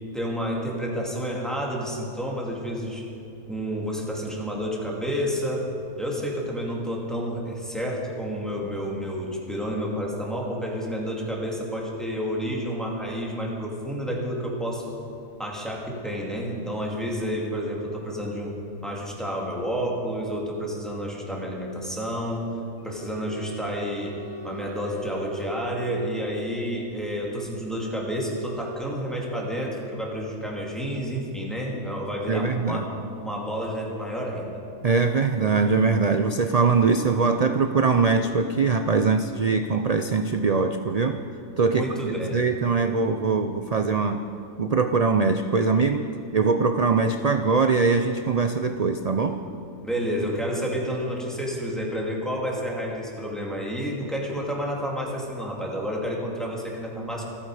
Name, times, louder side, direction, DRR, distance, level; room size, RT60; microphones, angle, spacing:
voice 1, 0.1-3.0 3.5-5.7 6.0-15.0 15.4-18.6 18.8-22.5 22.8-34.5 41.7-42.4 49.8-57.2, equal, ahead, -3 dB, 2.3 m, -30 dB
sound 1, 22.8-26.7, right 6 dB, 55° left, 4.4 m, -41 dB
voice 2, 32.3-32.8 34.8-41.2 41.6-44.2 44.6-46.0 46.3-49.4, right 4 dB, 85° right, 7 dB, 0.3 m, -22 dB
26.0 x 9.0 x 4.9 m, 2.7 s
omnidirectional pair, 1.4 m